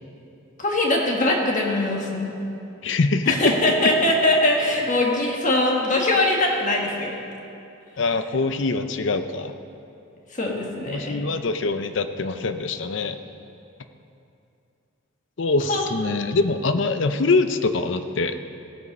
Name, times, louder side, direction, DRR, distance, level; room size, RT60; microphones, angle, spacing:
voice 1, 0.6-2.4 3.3-7.1 10.3-11.1 15.7-15.8, left 1 dB, 35° left, -1 dB, 1.8 m, -22 dB
voice 2, 2.8-3.6 8.0-9.5 10.9-13.2 15.4-18.3, left 3 dB, 60° left, 9 dB, 0.6 m, -23 dB
17.5 x 8.1 x 5.4 m, 2.6 s
head